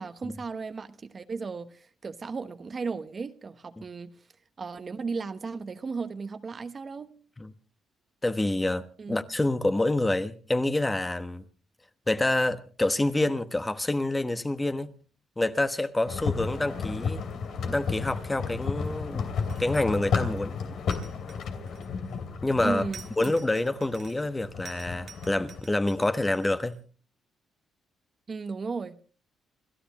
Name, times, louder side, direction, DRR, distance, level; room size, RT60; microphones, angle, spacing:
voice 1, 0.0-4.2 4.6-7.1 9.0-9.2 22.6-23.3 28.3-29.0, right 4 dB, 40° right, 1.0 m, -35 dB
voice 2, 8.2-11.4 12.1-14.9 15.4-17.2 17.6-19.3 19.6-20.6 22.4-22.8 23.2-26.7, left 2 dB, 15° left, 1.2 m, -27 dB
sound 1, 16.1-25.6, left 5 dB, 70° left, 2.8 m, -33 dB
sound 2, 19.4-20.0 20.9-22.2 22.9-24.3 24.6-26.8, right 6 dB, 55° right, 1.6 m, -50 dB
29.0 x 13.0 x 3.1 m
cardioid pair, 90°, 0 cm